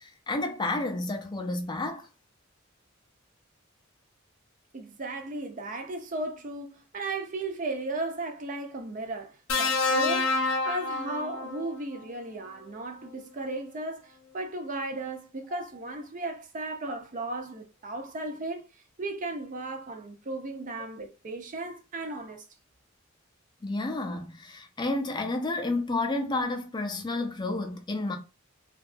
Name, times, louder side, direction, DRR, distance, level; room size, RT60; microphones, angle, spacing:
voice 1, 0.0-2.1 15.5-15.6 23.6-28.2, left 2 dB, 20° left, 0.4 m, -31 dB
voice 2, 4.7-10.3 10.6-18.6 19.0-22.4, right 2 dB, 40° right, 0.5 m, -35 dB
sound 1, 9.5-11.8 13.1-13.3, left 3 dB, 75° left, 0.6 m, -28 dB
2.7 x 2.3 x 2.5 m
head